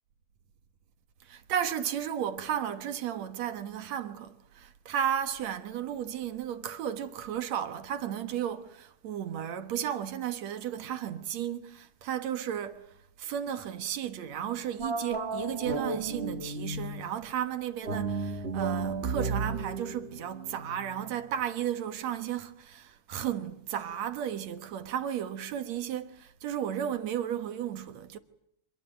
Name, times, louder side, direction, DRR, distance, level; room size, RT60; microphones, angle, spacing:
voice 1, 1.2-12.9 13.2-28.2, right 10 dB, 65° right, 2.5 m, -34 dB
sound 1, 14.8-17.1 17.8-21.2, right 3 dB, 35° right, 1.1 m, -34 dB
26.0 x 23.0 x 9.1 m
omnidirectional pair, 3.4 m